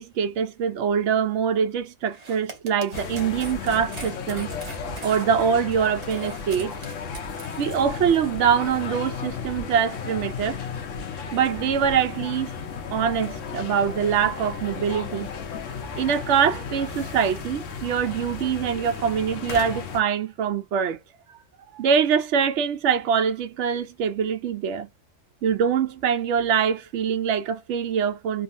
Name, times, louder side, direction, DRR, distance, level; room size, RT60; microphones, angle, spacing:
voice 1, 0.0-4.5 5.0-6.7 7.6-10.6 11.3-12.5 12.9-15.3 16.0-21.0 21.3-21.4 21.7-24.9 25.4-28.4, right 7 dB, 70° right, 0.9 m, -24 dB
sound 1, 2.1-7.8, right 4 dB, 35° right, 0.9 m, -42 dB
sound 2, 2.9-20.0, left 5 dB, 75° left, 1.0 m, -34 dB
3.7 x 2.0 x 2.5 m
omnidirectional pair, 1.3 m